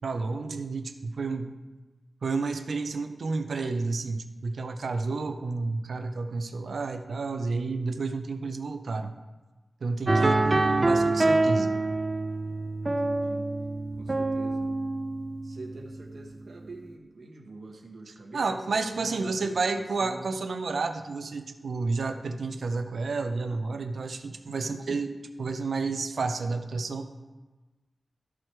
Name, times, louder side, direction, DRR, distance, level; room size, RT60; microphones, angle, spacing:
voice 1, 0.0-1.5 2.2-9.1 9.8-11.7 18.1-27.1, right 3 dB, 80° right, 8 dB, 0.6 m, -31 dB
sound 1, 10.1-16.2, right 2 dB, 30° right, 0.5 m, -26 dB
voice 2, 12.9-13.5 14.0-14.7 15.4-20.3 24.5-25.0, right 2 dB, 65° right, 1 dB, 1.2 m, -45 dB
13.0 x 4.8 x 4.5 m, 1.2 s
wide cardioid pair, 105°, 0 cm